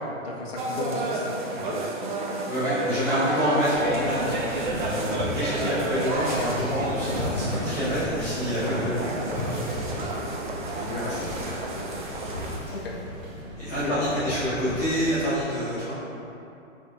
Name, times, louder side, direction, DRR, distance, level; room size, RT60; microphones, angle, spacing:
voice 1, 0.2-1.9 2.8-3.0 5.6-5.9 12.7-13.0 13.8-14.4, left 3 dB, 50° left, -3 dB, 0.9 m, -34 dB
sound 1, 0.6-12.6, right 2 dB, 40° right, 0.5 m, -31 dB
voice 2, 2.5-4.5 4.7-9.8 10.7-11.3 13.6-16.0, equal, 10° left, -15 dB, 0.6 m, -27 dB
sound 2, 3.7-15.1, left 1 dB, 20° right, 1.0 m, -37 dB
4.8 x 3.5 x 2.8 m, 2.8 s
hypercardioid pair, 160°, 39 cm